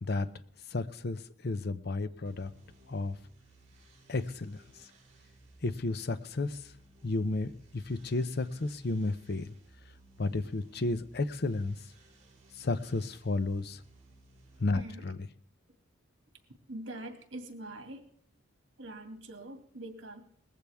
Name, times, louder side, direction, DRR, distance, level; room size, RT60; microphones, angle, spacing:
voice 1, 0.7-2.5 2.9-3.2 4.1-4.6 5.6-6.6 7.0-9.5 10.2-11.8 12.6-13.8 14.6-15.3, left 2 dB, 55° left, 12 dB, 0.7 m, -32 dB
sound 1, 2.2-14.7, right 2 dB, 40° right, 4.4 m, -60 dB
voice 2, 14.7-15.0 16.7-18.0 18.8-20.2, right 1 dB, 70° right, 5 dB, 2.2 m, -44 dB
19.5 x 15.0 x 3.5 m, 0.63 s
head